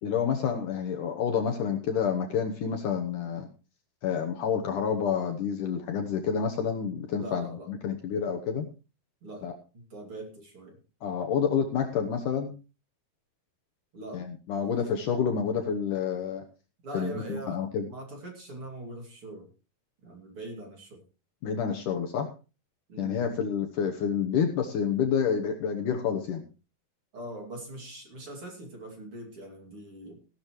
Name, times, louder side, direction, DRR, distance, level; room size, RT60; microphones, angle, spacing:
voice 1, 0.0-3.5 4.0-8.7 9.4-9.5 11.0-12.5 14.1-16.4 16.9-17.9 21.4-22.3 23.0-26.4, left 7 dB, 65° left, 4 dB, 2.3 m, -29 dB
voice 2, 7.1-7.7 9.2-10.8 13.9-14.2 14.6-14.8 16.8-19.5 20.0-21.0 22.9-23.2 27.1-30.2, right 1 dB, 40° right, 2 dB, 3.0 m, -42 dB
16.5 x 12.5 x 3.1 m, 0.31 s
omnidirectional pair, 4.6 m